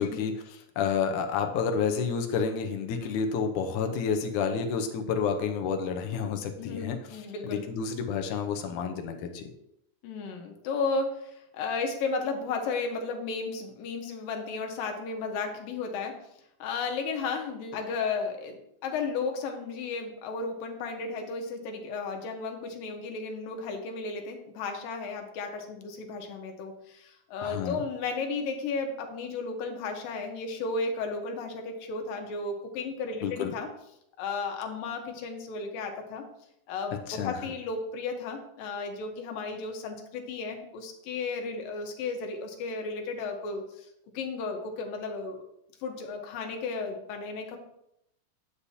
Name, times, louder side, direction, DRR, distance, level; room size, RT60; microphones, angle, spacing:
voice 1, 0.0-7.0 7.4-9.4 27.4-27.8 33.2-33.5 37.1-37.3, left 6 dB, 75° left, 5 dB, 2.2 m, -30 dB
voice 2, 6.6-7.6 10.0-16.2 16.6-33.7 34.2-36.2 36.7-43.9 44.1-45.4 45.8-47.6, left 4 dB, 90° left, 3 dB, 2.9 m, -34 dB
9.7 x 8.3 x 2.8 m, 0.78 s
omnidirectional pair, 3.8 m